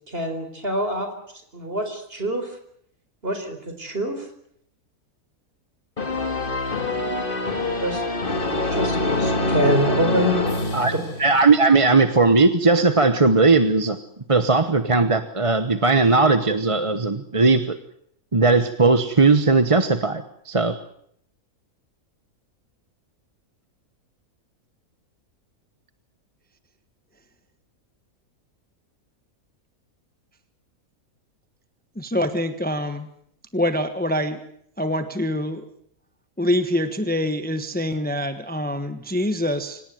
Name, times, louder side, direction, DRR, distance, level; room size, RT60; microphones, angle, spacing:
voice 1, 0.1-1.1 1.5-2.5 3.2-4.3 7.8-8.0 8.7-10.4, right 1 dB, 40° right, 6 dB, 4.7 m, -25 dB
sound 1, 6.0-11.6, left 2 dB, 35° left, 2.3 m, -25 dB
voice 2, 11.2-14.0 14.3-17.7 18.3-20.8, right 3 dB, 25° right, 10 dB, 1.0 m, -18 dB
voice 3, 31.9-33.1 33.5-34.5 34.8-35.6 36.4-39.8, left 1 dB, 5° left, 9 dB, 1.2 m, -25 dB
25.5 x 18.5 x 9.3 m, 0.70 s
omnidirectional pair, 1.5 m